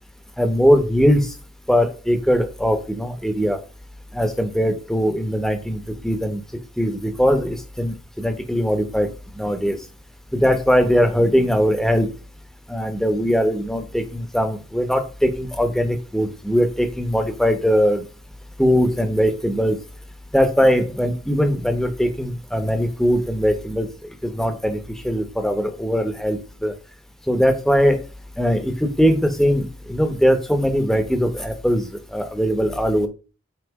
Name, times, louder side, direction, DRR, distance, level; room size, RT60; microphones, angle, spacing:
voice 1, 0.4-1.3 1.7-3.6 4.1-6.4 6.8-9.1 9.4-9.8 10.3-12.1 12.7-18.0 18.6-19.8 20.3-23.9 24.2-26.7 27.3-28.0 28.4-33.1, equal, ahead, 7 dB, 0.8 m, -20 dB
7.9 x 3.0 x 4.7 m, 0.33 s
head